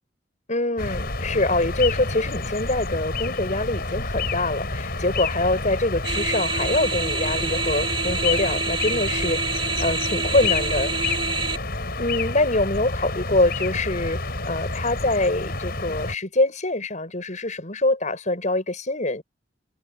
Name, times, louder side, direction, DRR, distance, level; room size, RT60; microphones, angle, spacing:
voice 1, 0.5-10.9 12.0-19.2, left 2 dB, 40° left, 6.5 m, -24 dB
sound 1, 0.8-16.2, left 3 dB, 55° left, 5.7 m, -29 dB
sound 2, 6.0-11.6, right 4 dB, 30° right, 3.7 m, -27 dB
head